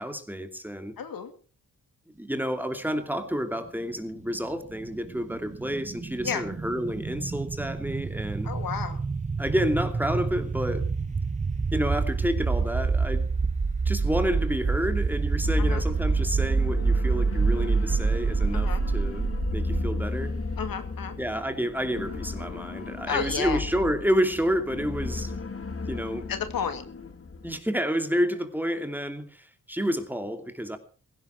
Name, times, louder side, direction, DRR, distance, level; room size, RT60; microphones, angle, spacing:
voice 1, 0.0-0.9 2.1-8.5 9.4-10.9 11.7-13.3 13.8-20.3 21.2-25.4 25.9-26.3 27.4-30.8, equal, 5° right, 2.8 m, -29 dB
voice 2, 1.0-1.3 6.2-6.4 8.4-9.0 15.6-15.8 18.5-18.8 20.6-21.1 23.1-23.6 26.3-26.8, left 7 dB, 80° left, 2.3 m, -31 dB
sound 1, 4.2-20.1, right 4 dB, 20° right, 0.7 m, -27 dB
sound 2, 15.4-27.6, left 4 dB, 40° left, 2.3 m, -35 dB
16.5 x 16.0 x 4.7 m
cardioid pair, 80°, 34 cm